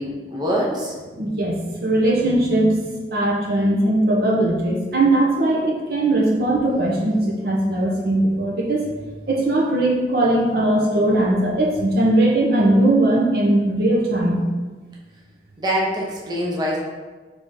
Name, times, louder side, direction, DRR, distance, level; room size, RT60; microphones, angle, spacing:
voice 1, 0.0-1.0 15.6-16.8, equal, 25° right, -4 dB, 0.8 m, -24 dB
voice 2, 1.1-2.7 3.1-14.4, right 1 dB, 60° right, -2 dB, 0.7 m, -19 dB
3.6 x 3.5 x 4.1 m, 1.3 s
head